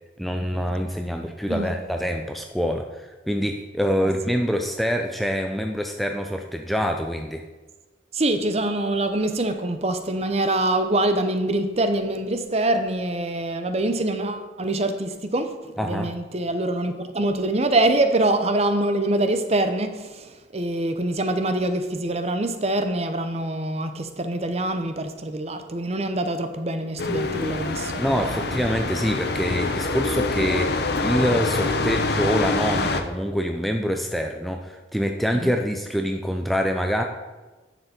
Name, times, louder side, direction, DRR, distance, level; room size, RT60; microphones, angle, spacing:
voice 1, 0.2-7.4 15.8-16.1 28.0-37.0, equal, ahead, 0.4 m, -25 dB
voice 2, 8.1-28.7 35.3-35.5, right 1 dB, 35° right, 0.7 m, -25 dB
sound 1, 27.0-33.0, left 3 dB, 55° left, 0.7 m, -25 dB
10.0 x 6.9 x 4.3 m
head